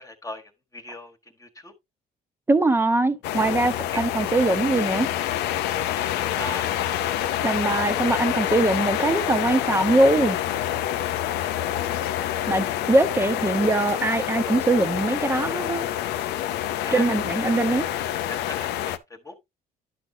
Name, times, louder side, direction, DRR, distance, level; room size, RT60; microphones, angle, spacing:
voice 1, 0.0-1.7 3.9-4.0 6.1-6.8 16.8-17.1 18.3-19.3, left 1 dB, 20° left, 1.5 m, -38 dB
voice 2, 2.5-5.1 7.4-10.4 12.5-15.8 16.9-17.9, right 2 dB, 15° right, 1.0 m, -22 dB
sound 1, 3.2-19.0, left 12 dB, 85° left, 0.7 m, -27 dB
11.0 x 6.2 x 2.7 m
cardioid pair, 110°, 17 cm